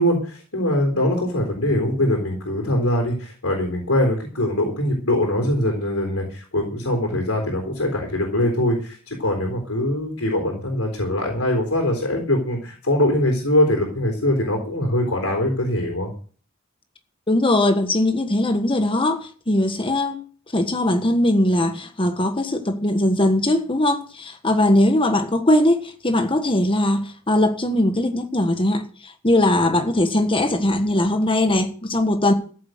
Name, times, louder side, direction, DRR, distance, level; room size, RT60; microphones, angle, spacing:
voice 1, 0.0-16.1, left 1 dB, 80° left, 3.8 m, -22 dB
voice 2, 17.3-20.2 20.5-32.3, left 1 dB, 25° left, 1.6 m, -20 dB
14.0 x 7.6 x 7.9 m
head